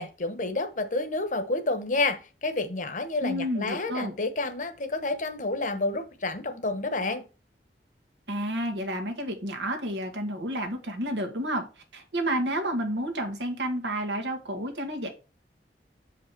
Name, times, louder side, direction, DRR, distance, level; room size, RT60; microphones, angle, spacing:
voice 1, 0.0-7.2, left 2 dB, 45° left, 1.0 m, -29 dB
voice 2, 3.2-4.1 8.3-11.6 11.9-15.1, equal, 85° right, 1.8 m, -30 dB
7.3 x 5.0 x 4.5 m
head